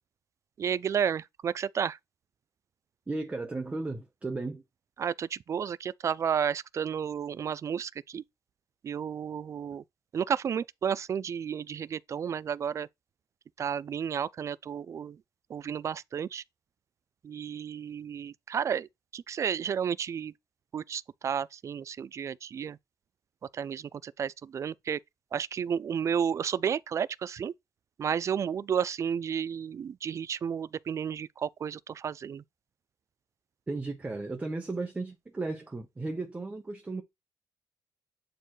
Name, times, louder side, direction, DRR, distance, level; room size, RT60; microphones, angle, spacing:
voice 1, 0.6-2.0 5.0-8.2 8.8-9.8 10.1-12.9 13.6-15.2 15.5-16.4 17.2-20.3 20.7-22.8 23.5-25.0 25.3-27.5 28.0-32.4, right 7 dB, 40° right, 0.4 m, -32 dB
voice 2, 3.1-4.6 33.7-37.0, right 3 dB, 15° right, 1.0 m, -35 dB
8.9 x 4.5 x 3.1 m
cardioid pair, 135°, 8 cm